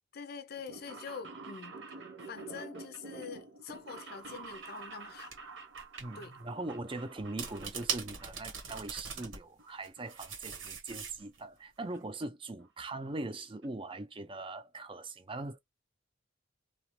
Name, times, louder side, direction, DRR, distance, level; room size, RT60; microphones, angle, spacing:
voice 1, 0.1-5.4 6.1-6.4, left 6 dB, 55° left, 0.5 m, -45 dB
sound 1, 0.5-8.3 8.6-9.3 9.6-10.7 10.9-11.0 11.9-12.0 12.2-12.3 12.6-12.7 13.0-13.2 13.6-13.7 13.9-14.0, right 3 dB, 70° right, 1.0 m, -48 dB
sound 2, 4.3-4.5 5.3-5.4 5.8-6.0 7.2-9.4 9.8-11.4, right 6 dB, 90° right, 1.3 m, -40 dB
voice 2, 6.0-15.6, right 2 dB, 25° right, 0.6 m, -41 dB
2.9 x 2.4 x 3.0 m
head